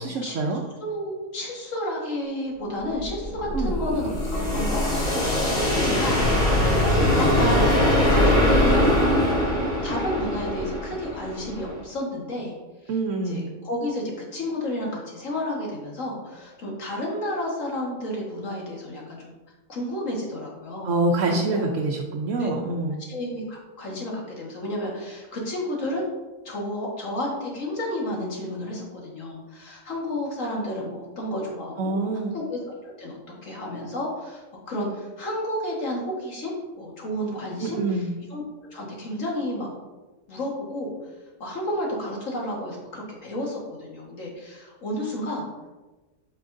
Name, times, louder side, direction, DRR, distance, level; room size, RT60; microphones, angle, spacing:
voice 1, 0.0-0.6 3.5-3.8 12.9-13.4 20.8-23.0 31.8-32.3 37.6-38.1, right 2 dB, 80° right, 0 dB, 1.0 m, -25 dB
voice 2, 0.8-7.8 8.1-8.9 9.5-12.5 12.8-13.0 13.2-19.3 19.7-20.9 21.3-21.6 22.4-22.5 23.0-26.0 26.5-32.0 32.3-32.6 33.0-38.4 38.7-39.7 40.3-41.1 41.4-45.7, left 1 dB, 85° left, -2 dB, 1.9 m, -31 dB
sound 1, 2.8-11.8, left 1 dB, 60° left, 2.7 m, -22 dB
8.4 x 5.2 x 2.6 m, 1.2 s
omnidirectional pair, 1.3 m